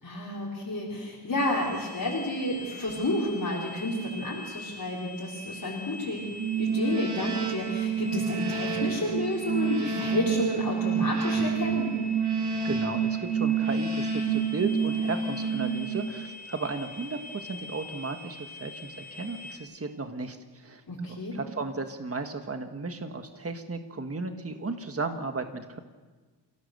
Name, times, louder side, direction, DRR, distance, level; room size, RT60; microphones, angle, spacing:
voice 1, 0.0-6.2 6.6-11.9 20.9-21.3, left 1 dB, 50° left, -5 dB, 4.4 m, -31 dB
sound 1, 1.4-19.6, left 1 dB, 20° left, 5.4 m, -44 dB
sound 2, 6.4-16.3, right 6 dB, 70° right, 3.4 m, -28 dB
voice 2, 12.6-20.8 21.3-25.8, right 3 dB, 35° right, 6 dB, 1.5 m, -34 dB
28.5 x 17.0 x 6.8 m, 1.3 s
wide cardioid pair, 120°, 42 cm